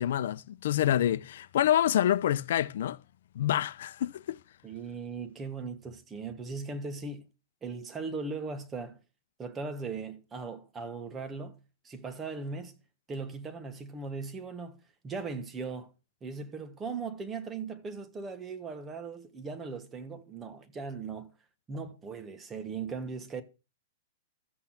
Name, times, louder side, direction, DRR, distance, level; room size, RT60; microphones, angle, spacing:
voice 1, 0.0-3.0 3.4-4.4, left 11 dB, 65° left, 0.6 m, -27 dB
voice 2, 4.6-7.3 7.6-9.0 9.4-11.6 11.8-12.8 13.1-15.9 16.2-21.3 21.7-23.4, right 4 dB, 15° right, 1.3 m, -38 dB
13.5 x 8.4 x 5.8 m
supercardioid pair, 165°, 0 cm